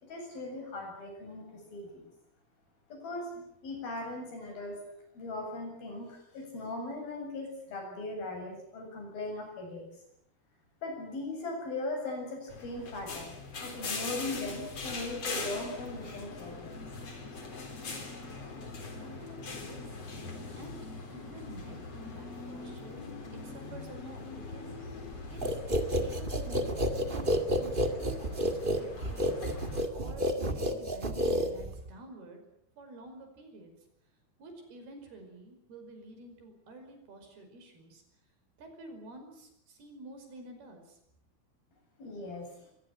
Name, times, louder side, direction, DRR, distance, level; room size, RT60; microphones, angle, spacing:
voice 1, 0.0-2.1 2.9-4.8 5.1-9.9 10.8-13.3 13.6-16.9 42.0-42.5, left 2 dB, 70° left, 3 dB, 9.2 m, -39 dB
sound 1, 12.5-29.8, left 3 dB, 40° left, 4.7 m, -41 dB
voice 2, 18.9-20.0 20.6-20.8 21.1-23.1 23.3-24.7 25.3-25.6 26.0-29.5 29.9-32.4 32.8-33.7 34.4-38.0 38.6-41.0, right 1 dB, 80° right, 5 dB, 7.2 m, -49 dB
sound 2, 25.4-31.9, equal, 25° right, 1.1 m, -30 dB
24.0 x 20.5 x 9.0 m, 0.74 s
omnidirectional pair, 4.4 m